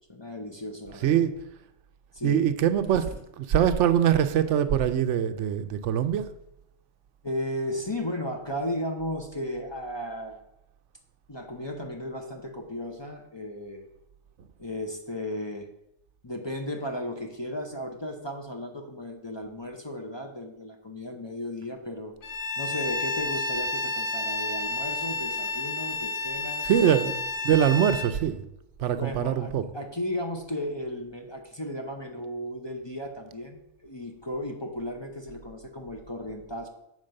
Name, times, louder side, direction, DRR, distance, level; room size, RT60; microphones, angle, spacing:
voice 1, 0.1-1.2 2.1-2.4 7.2-10.4 11.3-13.9 14.6-15.7 16.2-22.1 22.6-26.7 28.9-36.7, left 1 dB, 25° left, 0.7 m, -35 dB
voice 2, 1.0-1.3 2.2-3.1 3.4-6.3 26.6-27.2 27.4-28.4 28.8-29.7, right 9 dB, 80° right, 0.9 m, -23 dB
Bowed string instrument, 22.2-28.1, left 3 dB, 70° left, 1.1 m, -31 dB
7.4 x 4.6 x 6.4 m
omnidirectional pair, 1.2 m